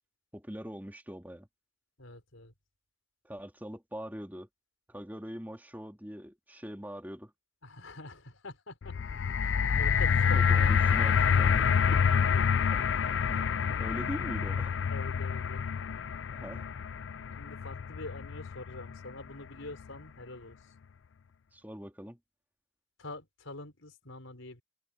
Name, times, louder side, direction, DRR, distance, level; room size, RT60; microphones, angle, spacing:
voice 1, 0.3-1.5 3.2-4.5 4.9-7.3 10.3-12.0 13.3-14.7 16.3-16.7 21.5-22.2, equal, 10° right, 2.6 m, -42 dB
voice 2, 2.0-2.5 7.6-9.0 9.4-10.5 11.7-12.4 14.9-15.7 17.4-20.7 23.0-24.6, left 2 dB, 90° left, 5.4 m, -45 dB
sound 1, 8.8-19.0 19.8-19.9, left 7 dB, 65° left, 0.4 m, -27 dB
open air
head